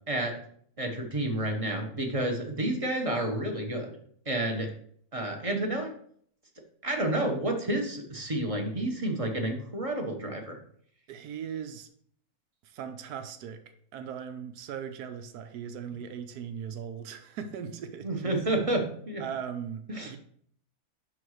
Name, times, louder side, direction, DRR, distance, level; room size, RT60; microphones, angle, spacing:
voice 1, 0.1-0.4 0.8-3.9 4.3-4.7 5.1-5.9 6.8-10.6 18.0-19.2 19.9-20.1, right 1 dB, 25° right, 2 dB, 0.9 m, -30 dB
voice 2, 11.1-11.9 12.6-13.6 13.9-18.4 19.2-20.2, right 8 dB, 85° right, 8 dB, 1.2 m, -39 dB
6.2 x 3.9 x 6.3 m, 0.62 s
omnidirectional pair, 1.6 m